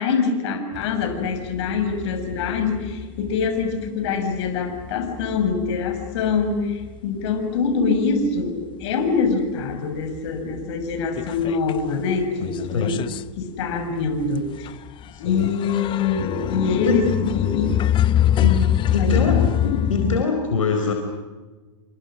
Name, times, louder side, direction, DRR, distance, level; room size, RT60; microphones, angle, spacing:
voice 1, 0.0-6.8 7.0-12.9 13.4-14.7 15.2-17.8 19.0-19.4, left 5 dB, 60° left, 6 dB, 6.7 m, -24 dB
sound 1, 0.7-7.4 7.7-8.8 9.3-9.4 9.7-9.8 10.0-11.9 12.2-20.2, left 12 dB, 30° left, 0.9 m, -25 dB
voice 2, 12.7-13.0 15.1-15.5 16.8-17.0 18.4-19.3 19.6-20.9, left 4 dB, 85° left, 3 dB, 4.9 m, -23 dB
29.5 x 26.5 x 6.3 m, 1.3 s
hypercardioid pair, 105°, 16 cm